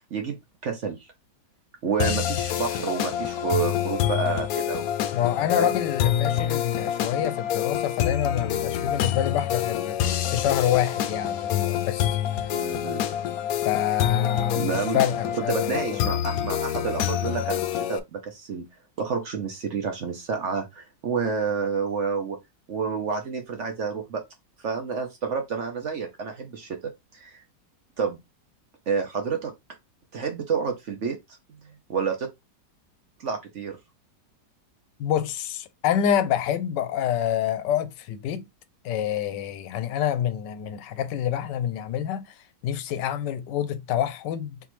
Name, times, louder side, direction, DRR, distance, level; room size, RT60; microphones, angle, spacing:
voice 1, 0.6-1.1 1.8-4.9 5.6-5.7 12.5-13.0 14.6-15.0 15.5-18.6 19.0-22.4 22.7-24.2 24.6-27.4 28.0-28.2 28.9-29.5 30.1-31.2 31.5-32.3 33.2-33.8, right 5 dB, 55° right, 0.9 m, -29 dB
sound 1, 2.0-18.0, left 10 dB, 70° left, 0.9 m, -27 dB
voice 2, 5.1-10.0 10.3-12.5 13.6-16.1 35.0-38.5 38.8-44.6, left 10 dB, 90° left, 1.3 m, -27 dB
4.0 x 3.6 x 3.0 m
omnidirectional pair, 1.9 m